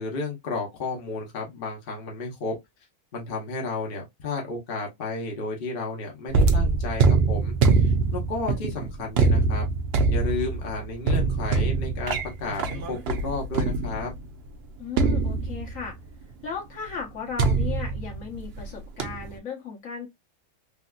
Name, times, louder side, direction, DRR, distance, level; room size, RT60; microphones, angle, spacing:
voice 1, 0.0-2.5 3.1-9.6 10.1-14.1, left 3 dB, 40° left, 1.0 m, -32 dB
sound 1, 6.3-14.2 15.0-16.0 17.4-18.7 19.0-19.3, right 4 dB, 60° right, 0.7 m, -23 dB
voice 2, 14.8-16.0 16.4-20.1, left 6 dB, 60° left, 1.4 m, -35 dB
3.3 x 2.7 x 2.3 m
omnidirectional pair, 1.6 m